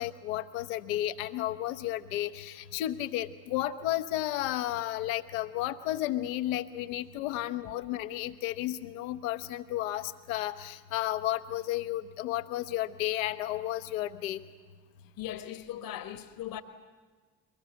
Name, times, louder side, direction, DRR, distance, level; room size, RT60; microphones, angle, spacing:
voice 1, 0.0-14.4, left 14 dB, 70° left, 1.0 m, -33 dB
voice 2, 15.0-16.6, left 11 dB, 55° left, 1.4 m, -39 dB
23.5 x 19.5 x 8.1 m
figure-of-eight pair, 45°, 42 cm